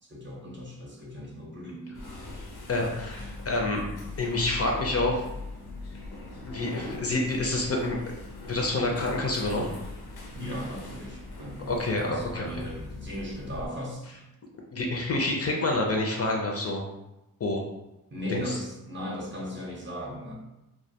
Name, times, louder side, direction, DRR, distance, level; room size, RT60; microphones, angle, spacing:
voice 1, 0.0-2.1 10.3-14.2 18.1-20.3, equal, 30° right, -2 dB, 0.6 m, -37 dB
sound 1, 1.9-13.7, left 2 dB, 85° left, 0.6 m, -40 dB
voice 2, 2.7-3.8 4.2-5.2 6.4-8.0 8.5-9.7 11.7-12.4 14.7-16.8 17.4-17.6 18.3-18.5, left 2 dB, 40° left, 0 dB, 0.4 m, -28 dB
2.1 x 2.1 x 2.7 m, 0.92 s
cardioid pair, 70°, 36 cm